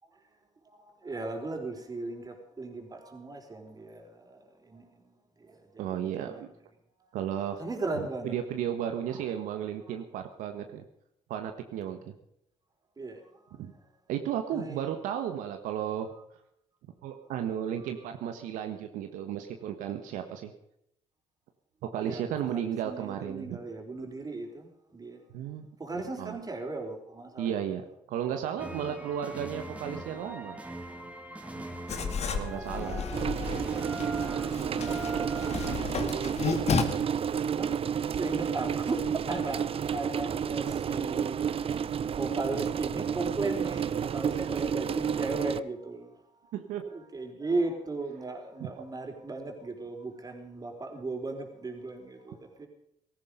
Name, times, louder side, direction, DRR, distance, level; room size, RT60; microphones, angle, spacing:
voice 1, 0.8-5.1 5.4-6.4 7.6-8.3 13.0-13.2 14.5-14.9 22.0-25.2 25.8-27.5 28.7-28.9 32.4-39.6 39.9-46.1 46.9-52.7, right 2 dB, 30° right, 4 dB, 4.6 m, -37 dB
voice 2, 5.8-6.5 7.1-7.6 7.9-10.8 11.3-12.1 13.6-13.7 14.1-16.1 17.0-20.5 21.9-23.6 25.3-25.7 25.9-26.4 27.4-30.6 32.3-33.1 46.5-46.8 48.6-48.8, right 9 dB, 80° right, 6 dB, 1.5 m, -34 dB
sound 1, 28.6-35.8, right 1 dB, 10° right, 2.3 m, -40 dB
Writing, 31.9-36.8, left 5 dB, 55° left, 2.3 m, -33 dB
sound 2, 33.1-45.6, right 8 dB, 45° right, 0.7 m, -31 dB
17.5 x 14.0 x 5.2 m, 0.78 s
supercardioid pair, 80°, 13 cm